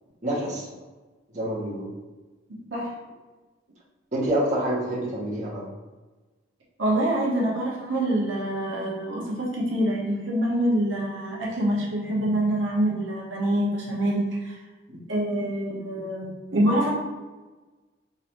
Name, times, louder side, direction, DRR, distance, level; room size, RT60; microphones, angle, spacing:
voice 1, 0.2-0.7 1.3-1.9 4.1-5.6 14.9-15.0, right 1 dB, 40° right, -6 dB, 1.2 m, -27 dB
voice 2, 6.8-14.6 15.1-16.9, right 1 dB, 85° right, -4 dB, 1.1 m, -25 dB
3.9 x 2.7 x 4.4 m, 1.2 s
head